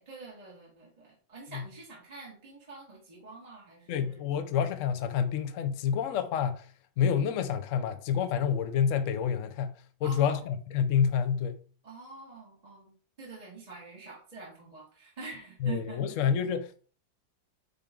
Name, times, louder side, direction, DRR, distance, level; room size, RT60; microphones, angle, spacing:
voice 1, 0.0-4.2 10.0-10.5 11.8-16.2, right 4 dB, 20° right, 2.0 m, -46 dB
voice 2, 3.9-6.7 7.0-11.6 15.6-16.9, left 7 dB, 85° left, 0.6 m, -28 dB
9.2 x 3.3 x 3.7 m
omnidirectional pair, 2.3 m